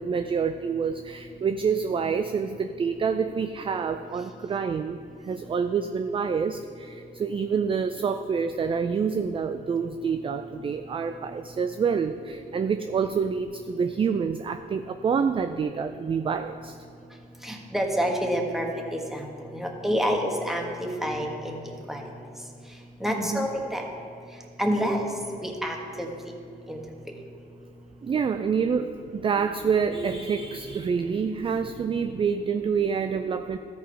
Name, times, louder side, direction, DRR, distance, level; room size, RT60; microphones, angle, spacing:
voice 1, 0.0-16.8 23.2-23.5 28.0-33.6, right 6 dB, 30° right, 9 dB, 0.3 m, -27 dB
voice 2, 17.4-18.7 18.9-19.2 19.5-21.5 21.9-22.1 23.0-23.8 24.6-25.1 25.4-26.1 26.7-26.8, equal, ahead, 1 dB, 1.3 m, -27 dB
13.0 x 4.7 x 4.5 m, 2.4 s
cardioid pair, 75°, 19 cm